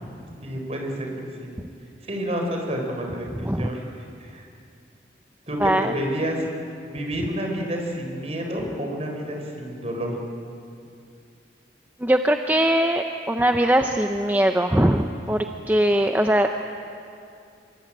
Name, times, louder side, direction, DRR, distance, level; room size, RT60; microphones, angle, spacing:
voice 1, 0.4-1.1 1.4-1.5 2.0-3.8 4.2-4.5 5.5-6.5 6.9-10.2, equal, 35° right, 2 dB, 4.5 m, -29 dB
voice 2, 5.6-5.9 12.0-16.5, right 1 dB, 10° right, 5 dB, 0.7 m, -21 dB
25.0 x 23.0 x 8.9 m, 2.5 s
head